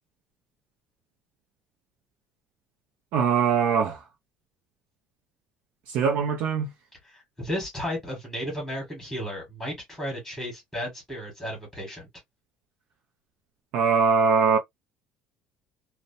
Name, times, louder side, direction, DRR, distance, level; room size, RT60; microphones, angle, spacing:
voice 1, 3.1-4.0 5.9-6.7 13.7-14.6, right 6 dB, 60° right, 0.5 m, -22 dB
voice 2, 7.1-12.1, equal, ahead, 1.4 m, -34 dB
2.7 x 2.1 x 2.6 m
cardioid pair, 160°, 3 cm